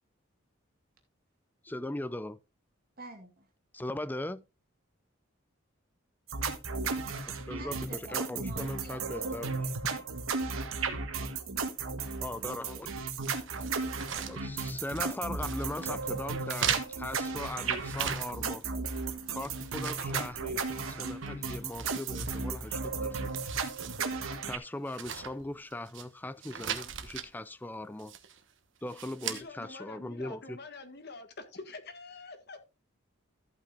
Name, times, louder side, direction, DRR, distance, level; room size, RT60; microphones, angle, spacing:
voice 1, 1.6-2.4 3.7-4.4 7.3-9.7 12.2-12.9 14.2-18.6 19.3-23.7 24.4-28.1 28.8-30.6, left 1 dB, 10° left, 0.4 m, -39 dB
voice 2, 3.0-3.5 7.5-10.2, right 2 dB, 45° right, 2.2 m, -49 dB
sound 1, 6.3-24.6, right 4 dB, 90° right, 1.4 m, -35 dB
sound 2, 13.2-15.1 15.4-15.9 16.4-18.6 18.9-20.9 21.2-21.3 21.7-22.9 23.2-24.0 24.3-24.4 24.9-26.0 26.4-27.3 28.0-28.4 28.9-29.4, right 8 dB, 60° right, 1.2 m, -39 dB
voice 3, 29.2-32.6, left 3 dB, 50° left, 1.7 m, -46 dB
14.0 x 8.8 x 2.5 m
head